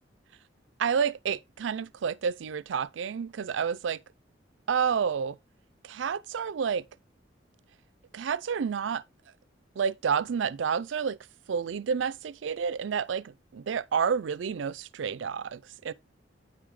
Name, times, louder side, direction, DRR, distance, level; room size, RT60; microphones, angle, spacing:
voice 1, 0.8-4.0 4.7-5.4 5.8-6.8 8.1-9.0 9.8-11.2 11.5-15.9, right 6 dB, 80° right, 0.4 m, -29 dB
9.3 x 4.8 x 3.5 m
head